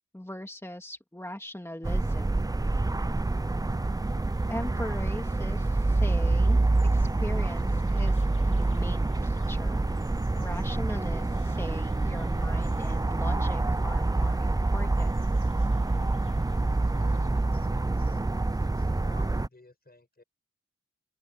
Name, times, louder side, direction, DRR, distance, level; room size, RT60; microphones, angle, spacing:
voice 1, 0.1-2.4 4.5-9.8 10.3-15.2, left 1 dB, 10° left, 2.4 m, -40 dB
sound 1, 1.8-19.5, right 2 dB, 10° right, 0.5 m, -26 dB
sound 2, 3.6-17.3, left 5 dB, 70° left, 3.3 m, -59 dB
voice 2, 16.9-18.2 18.5-20.2, left 2 dB, 30° left, 6.3 m, -54 dB
open air
cardioid pair, 45°, 31 cm